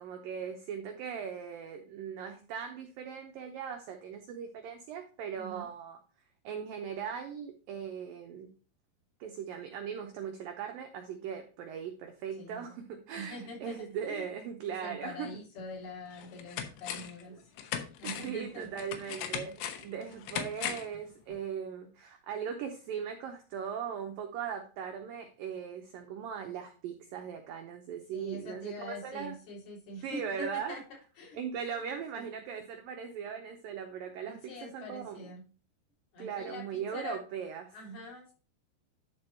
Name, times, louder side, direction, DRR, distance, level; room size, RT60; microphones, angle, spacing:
voice 1, 0.0-6.0 6.4-8.5 9.2-15.4 17.3-17.4 18.2-29.3 30.0-30.8 31.3-34.4 34.7-35.2 36.2-37.7, right 7 dB, 85° right, 4 dB, 2.0 m, -39 dB
voice 2, 5.3-5.7 12.4-12.8 13.1-14.2 14.7-17.5 18.0-18.7 19.0-19.1 28.1-30.8 31.2-31.4 31.8-32.2 34.2-35.5 36.1-37.2 37.7-38.3, left 1 dB, 55° left, -6 dB, 5.5 m, -44 dB
sound 1, 15.6-15.7 16.1-17.2 17.6-21.0 21.3-21.4, left 9 dB, 85° left, 3.3 m, -38 dB
11.5 x 4.5 x 4.4 m, 0.36 s
omnidirectional pair, 5.3 m